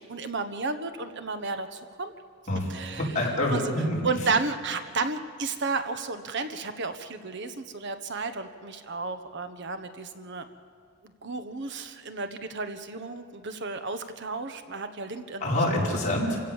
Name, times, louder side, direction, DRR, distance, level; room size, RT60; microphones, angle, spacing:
voice 1, 0.1-2.1 2.7-3.1 3.5-3.7 4.0-10.5 11.2-15.8, right 4 dB, 60° right, 9 dB, 1.3 m, -32 dB
voice 2, 2.5-4.0 15.4-16.4, left 1 dB, 35° left, -3 dB, 5.0 m, -26 dB
28.0 x 16.5 x 7.3 m, 2.4 s
head